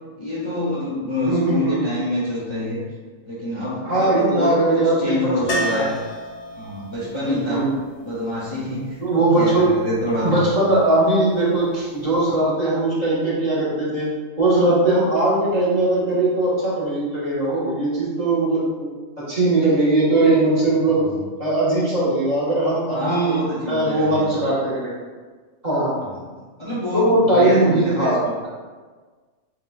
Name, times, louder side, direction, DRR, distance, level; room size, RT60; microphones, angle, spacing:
voice 1, 0.2-2.8 3.2-5.9 6.5-7.7 8.0-9.0 9.3-10.4 20.8-21.2 22.9-24.2 26.0-26.2 26.6-28.3, left 1 dB, 25° left, -8 dB, 0.8 m, -26 dB
voice 2, 1.2-1.8 3.8-5.2 5.5-5.9 7.3-7.7 9.0-9.7 10.2-18.9 19.2-21.0 21.4-23.4 23.7-24.9 25.6-25.9 26.9-28.5, right 2 dB, 35° right, -10 dB, 1.3 m, -20 dB
sound 1, 5.5-9.4 12.0-12.1 12.4-12.5, equal, 55° left, 0.9 m, -32 dB
7.2 x 2.4 x 2.3 m, 1.4 s
omnidirectional pair, 1.4 m